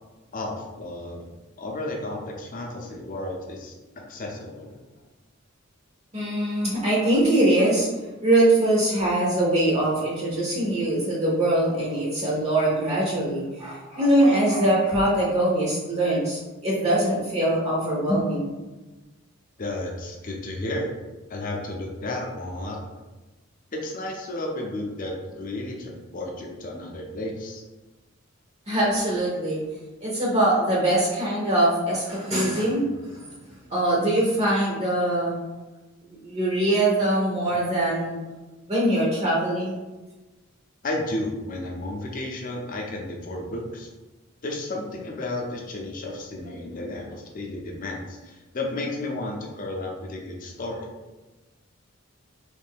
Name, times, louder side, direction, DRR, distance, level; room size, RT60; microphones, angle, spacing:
voice 1, 0.3-1.3 1.6-4.8 19.6-20.9 21.3-22.8 23.7-27.6 40.8-43.9 44.4-50.9, left 1 dB, 40° left, 1 dB, 0.6 m, -33 dB
voice 2, 6.1-7.9 8.2-18.5 28.7-29.6 30.0-33.3 33.7-35.4 36.0-38.2 38.7-39.8, right 1 dB, 30° right, -4 dB, 0.6 m, -22 dB
3.2 x 2.6 x 3.5 m, 1.1 s
head